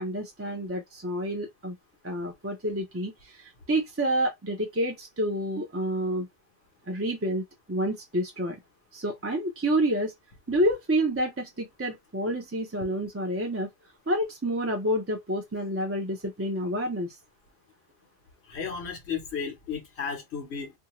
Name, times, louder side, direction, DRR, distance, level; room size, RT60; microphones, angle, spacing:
voice 1, 0.0-1.7 2.0-6.3 6.9-8.6 8.9-10.1 10.5-13.7 14.1-17.2, right 1 dB, 20° right, 0.4 m, -29 dB
voice 2, 18.5-20.7, left 6 dB, 80° left, 1.1 m, -34 dB
2.6 x 2.3 x 2.9 m
omnidirectional pair, 1.1 m